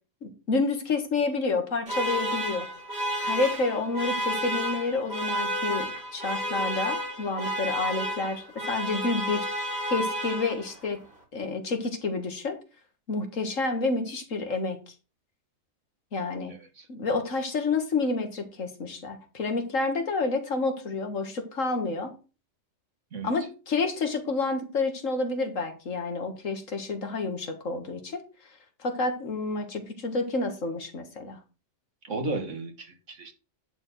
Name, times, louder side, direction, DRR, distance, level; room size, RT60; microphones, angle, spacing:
voice 1, 0.2-2.7 3.2-9.5 9.8-11.0 11.3-12.6 13.1-14.8 16.1-16.5 16.9-22.1 23.2-28.2 28.8-31.4, left 3 dB, 85° left, 2.0 m, -29 dB
sound 1, 1.9-10.9, equal, 50° right, 3.1 m, -31 dB
voice 2, 16.5-16.9 23.1-23.3 32.0-33.3, right 3 dB, 70° right, 2.0 m, -34 dB
10.5 x 4.6 x 6.5 m
omnidirectional pair, 1.3 m